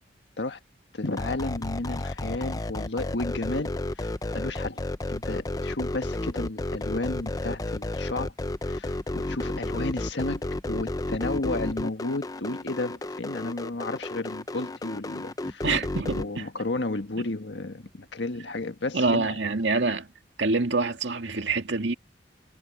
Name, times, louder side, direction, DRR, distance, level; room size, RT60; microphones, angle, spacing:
voice 1, 0.9-8.3 8.6-10.4 10.7-15.6 16.2-19.4, left 2 dB, 80° left, 1.5 m, -32 dB
sound 1, 1.1-16.3, left 2 dB, 20° left, 0.5 m, -32 dB
voice 2, 15.6-16.4 18.9-20.1 20.4-21.9, right 3 dB, 85° right, 2.1 m, -26 dB
head